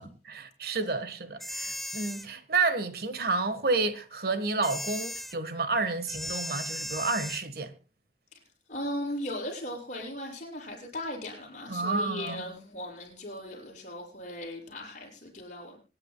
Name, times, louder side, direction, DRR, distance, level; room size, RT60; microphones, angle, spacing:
voice 1, 0.0-7.7 11.7-12.4, right 3 dB, 60° right, 1.5 m, -30 dB
sound 1, 1.4-2.3 4.6-5.3 6.1-7.4, equal, ahead, 0.5 m, -36 dB
voice 2, 8.7-15.8, left 1 dB, 45° left, 6.7 m, -37 dB
25.5 x 10.5 x 2.3 m
head